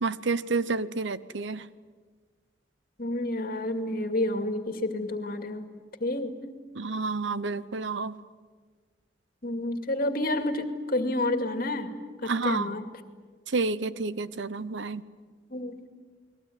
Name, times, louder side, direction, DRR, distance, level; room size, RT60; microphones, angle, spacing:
voice 1, 0.0-1.6 6.8-8.1 12.2-12.7 13.5-15.0, right 4 dB, 75° right, 15 dB, 0.9 m, -29 dB
voice 2, 3.0-5.7 6.0-6.3 9.4-11.9 12.2-12.9 15.5-15.9, left 1 dB, 50° left, 7 dB, 2.4 m, -29 dB
30.0 x 21.5 x 9.4 m, 1.5 s
head